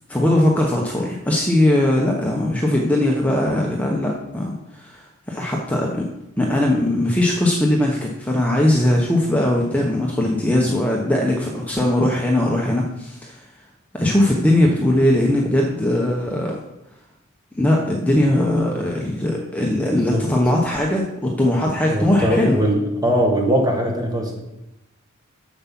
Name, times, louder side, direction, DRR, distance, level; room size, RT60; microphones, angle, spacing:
voice 1, 0.1-13.4 13.9-16.6 17.6-22.6, left 1 dB, 5° left, -1 dB, 1.0 m, -20 dB
voice 2, 21.9-24.4, equal, 20° right, 1 dB, 1.7 m, -20 dB
7.6 x 7.0 x 6.0 m, 0.88 s
head